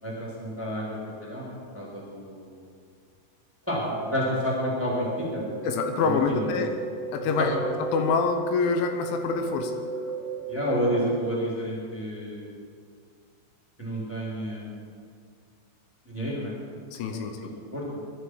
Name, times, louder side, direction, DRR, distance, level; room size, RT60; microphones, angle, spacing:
voice 1, 0.0-2.6 3.7-5.5 6.0-6.6 10.5-12.5 13.8-14.8 16.0-16.5 17.1-17.2 17.7-17.8, equal, 5° right, -5 dB, 2.7 m, -30 dB
sound 1, 3.6-11.6, right 3 dB, 20° left, 3.6 m, -35 dB
voice 2, 5.6-6.7 7.1-10.1 16.9-17.5, left 5 dB, 80° left, 6 dB, 3.4 m, -27 dB
22.5 x 12.0 x 4.8 m, 2.2 s
omnidirectional pair, 5.5 m